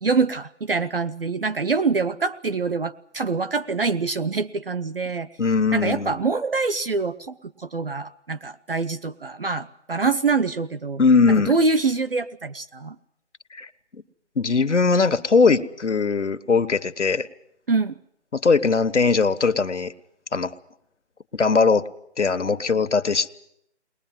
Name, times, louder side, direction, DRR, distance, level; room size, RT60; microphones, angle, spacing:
voice 1, 0.0-5.3 5.7-13.0 17.7-17.9, right 4 dB, 55° right, 11 dB, 0.8 m, -25 dB
voice 2, 5.4-6.1 11.0-11.5 13.5-13.7 14.4-17.3 18.3-19.9 20.3-20.5 21.3-21.9 22.2-23.3, left 4 dB, 90° left, 11 dB, 1.4 m, -20 dB
21.5 x 21.0 x 7.7 m, 0.75 s
figure-of-eight pair, 175°, 34 cm